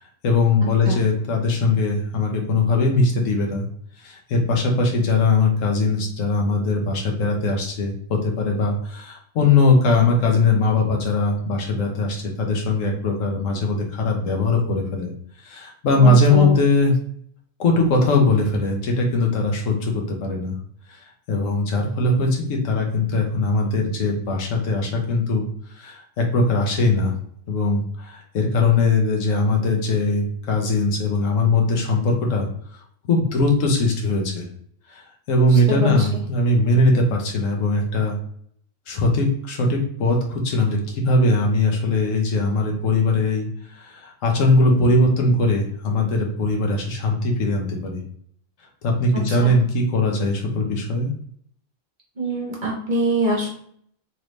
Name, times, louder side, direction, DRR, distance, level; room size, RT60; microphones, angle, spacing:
voice 1, 0.2-3.7 4.0-15.1 15.4-16.9 17.6-20.6 20.9-21.0 21.3-25.5 25.7-27.1 27.5-32.5 33.0-34.5 34.9-35.0 35.3-38.2 38.9-48.0 48.8-51.1, left 2 dB, 80° left, 1 dB, 1.2 m, -20 dB
voice 2, 16.0-16.6 35.7-35.9 49.4-49.5 52.2-53.5, right 2 dB, 45° right, -1 dB, 0.7 m, -23 dB
3.1 x 2.7 x 3.1 m, 0.63 s
omnidirectional pair, 1.3 m